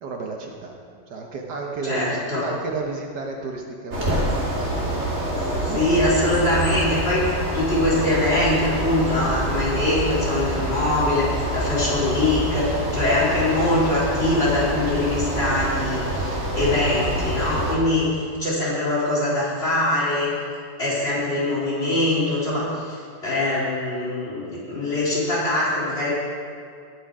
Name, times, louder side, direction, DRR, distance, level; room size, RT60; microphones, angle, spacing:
voice 1, 0.0-5.1 5.7-5.9, right 3 dB, 65° right, 0 dB, 1.6 m, -33 dB
voice 2, 1.8-2.5 5.6-7.3 7.5-20.4 20.8-26.1, left 1 dB, 35° left, -8 dB, 3.9 m, -23 dB
sound 1, 3.9-17.7, right 1 dB, 45° right, 2.6 m, -26 dB
19.0 x 6.3 x 4.9 m, 2.2 s
omnidirectional pair, 2.0 m